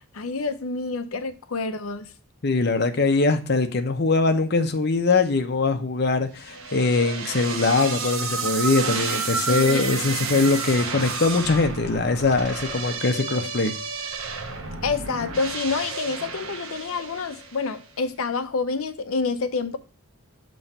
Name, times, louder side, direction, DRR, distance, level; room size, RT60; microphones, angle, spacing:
voice 1, 0.0-2.1 9.5-10.0 14.8-19.8, left 4 dB, 90° left, 0.7 m, -28 dB
voice 2, 2.4-13.7, left 3 dB, 50° left, 0.7 m, -22 dB
sound 1, 6.4-17.7, right 4 dB, 80° right, 0.9 m, -31 dB
7.3 x 3.1 x 5.4 m
head